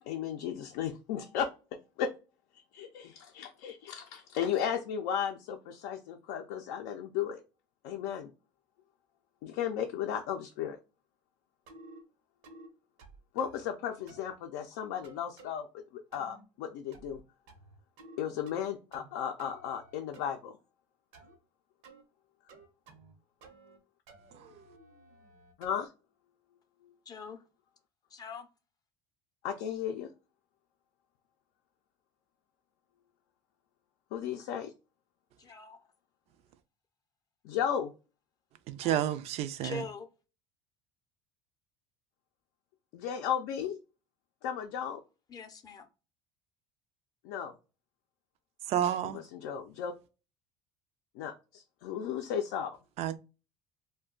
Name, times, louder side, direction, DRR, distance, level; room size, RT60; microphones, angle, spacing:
voice 1, 0.0-1.5 2.0-2.1 2.7-7.4 7.8-8.3 9.4-10.8 13.3-17.2 18.2-20.6 25.6-25.9 29.4-30.1 34.1-34.7 37.4-37.9 42.9-43.8 44.4-45.0 47.2-47.5 49.1-49.9 51.1-52.8, left 8 dB, 85° left, 0.4 m, -35 dB
sound 1, 11.7-12.0 12.4-12.7 13.0-13.6 14.1-14.3 15.0-15.5 16.1-16.4 16.9-17.2 17.5-18.2 18.5-19.1 19.4-20.3 21.1-21.4 21.8-22.0 22.5-23.1 23.4-23.8 24.1-25.9, right 3 dB, 80° right, 0.9 m, -54 dB
voice 2, 27.1-27.4 28.1-28.5 35.4-35.8 38.8-39.0 39.6-40.1 45.3-45.9, left 4 dB, 30° left, 0.5 m, -42 dB
voice 3, 38.7-39.8 48.6-49.2 53.0-53.2, right 11 dB, 55° right, 0.4 m, -31 dB
2.4 x 2.2 x 3.6 m
supercardioid pair, 110°, 12 cm